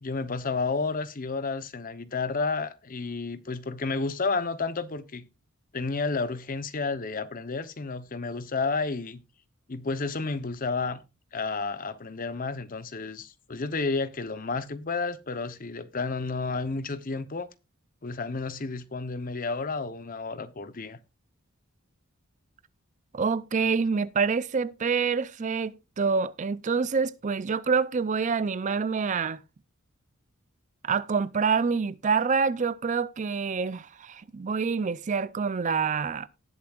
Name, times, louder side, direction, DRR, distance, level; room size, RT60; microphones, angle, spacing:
voice 1, 0.0-5.3 5.7-9.2 9.7-11.0 11.3-17.5 18.0-21.0, left 4 dB, 40° left, 0.8 m, -31 dB
voice 2, 23.1-29.4 30.8-36.3, right 5 dB, 35° right, 0.4 m, -27 dB
19.0 x 7.0 x 2.4 m
head